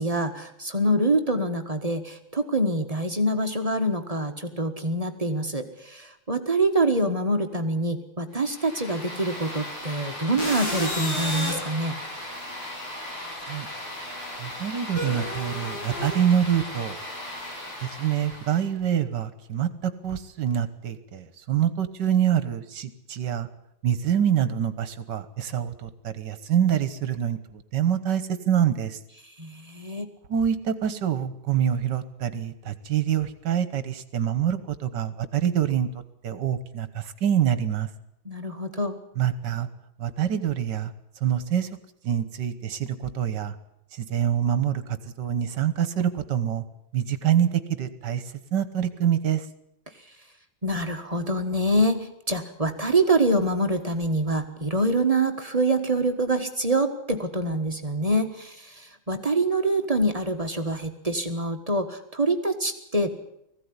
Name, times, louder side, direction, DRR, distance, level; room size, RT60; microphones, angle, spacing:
voice 1, 0.0-12.0 29.4-30.1 38.2-39.0 50.6-63.1, right 1 dB, 20° right, 5 dB, 1.3 m, -25 dB
sound 1, 8.4-18.6, left 1 dB, 80° left, 7.6 m, -34 dB
voice 2, 14.4-17.0 17.8-23.5 23.8-29.0 30.3-35.9 36.2-37.9 39.2-39.7 40.0-40.9 41.2-41.7 42.0-43.6 43.9-44.8 45.2-46.6 46.9-48.2 48.5-49.5, right 9 dB, 60° right, 12 dB, 1.7 m, -25 dB
20.0 x 15.5 x 9.7 m, 0.81 s
omnidirectional pair, 2.3 m